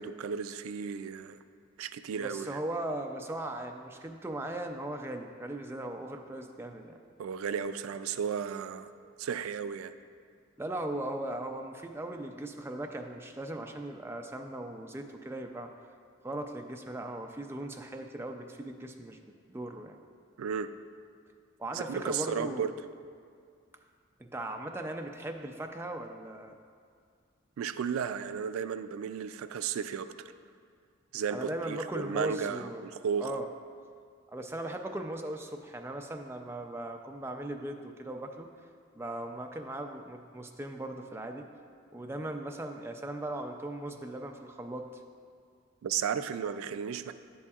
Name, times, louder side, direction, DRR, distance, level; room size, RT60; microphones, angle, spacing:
voice 1, 0.0-1.4 1.8-2.6 7.2-8.9 9.2-9.9 20.4-20.7 21.7-22.7 27.6-30.3 31.1-33.3 45.8-47.1, right 7 dB, 90° right, 12 dB, 0.3 m, -34 dB
voice 2, 2.2-7.0 10.6-15.7 16.2-19.2 19.5-20.0 21.6-22.7 24.2-26.6 31.3-32.8 33.2-33.5 34.3-38.5 38.9-41.5 41.9-44.9, right 1 dB, 10° right, 3 dB, 0.3 m, -38 dB
10.5 x 8.4 x 2.4 m, 2.1 s
head